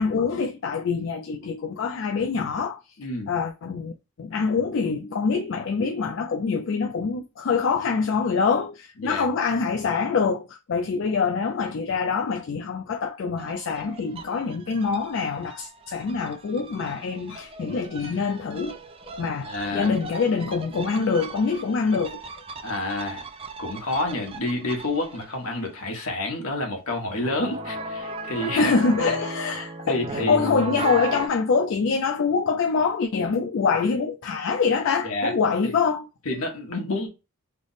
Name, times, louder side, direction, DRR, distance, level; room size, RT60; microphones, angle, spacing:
voice 1, 0.0-2.8 3.3-3.9 4.2-18.8 19.1-22.2 28.5-36.1, left 5 dB, 60° left, 0.4 m, -25 dB
voice 2, 3.0-3.3 9.0-9.3 19.4-19.9 22.6-23.2 23.6-28.7 29.1-29.2 29.9-30.4 35.0-35.3 35.6-35.7 36.2-37.1, left 2 dB, 75° left, 1.1 m, -29 dB
sound 1, 13.4-25.5 27.1-31.3, right 3 dB, 25° right, 0.3 m, -37 dB
3.3 x 2.1 x 3.9 m
head